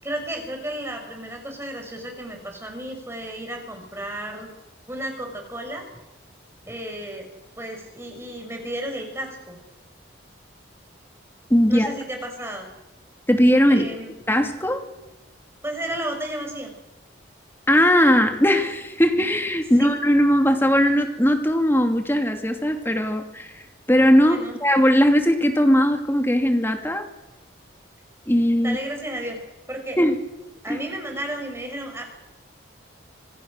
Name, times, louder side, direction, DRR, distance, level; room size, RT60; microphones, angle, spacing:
voice 1, 0.0-4.5 4.9-5.8 6.7-7.2 7.6-9.6 11.7-12.7 13.7-14.1 15.6-16.7 19.8-19.9 24.2-24.6 28.6-29.4 29.7-30.0 30.6-32.0, right 1 dB, 15° right, 3 dB, 5.8 m, -33 dB
voice 2, 11.5-11.9 13.3-13.9 14.3-14.8 17.7-23.6 23.9-27.1 28.3-28.8 30.0-30.2 30.7-30.8, equal, 10° left, 5 dB, 2.5 m, -19 dB
26.5 x 22.0 x 6.6 m, 1.0 s
head